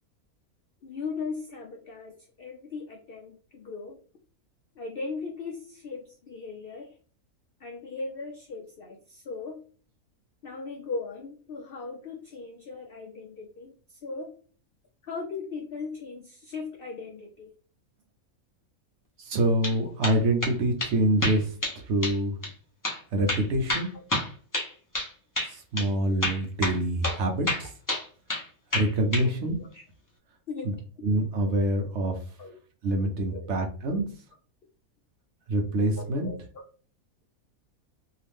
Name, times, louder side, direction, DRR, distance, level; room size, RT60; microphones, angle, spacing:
voice 1, 0.8-4.0 4.8-7.0 7.6-9.6 10.4-14.3 15.0-17.5 23.9-24.0 29.2-29.8 30.5-30.7 31.5-31.6 32.4-32.6 33.3-33.7 36.0-36.6, left 4 dB, 80° left, 2 dB, 0.5 m, -38 dB
voice 2, 19.2-21.5 21.9-22.4 23.1-23.9 25.4-27.7 28.7-29.6 30.6-30.7 31.0-32.2 32.8-34.0 35.5-36.3, right 1 dB, 65° right, 3 dB, 0.8 m, -26 dB
sound 1, 19.4-19.8 20.0-20.5 20.8-20.9 21.2-21.8 22.0-22.2 22.4-22.5 22.8-23.0 23.3-25.1 25.4-25.5 25.8-25.9 26.2-26.8 27.0-27.2 27.5-28.5 28.7-29.3, left 1 dB, 20° left, 0.5 m, -29 dB
2.8 x 2.4 x 3.3 m, 0.42 s
omnidirectional pair, 1.5 m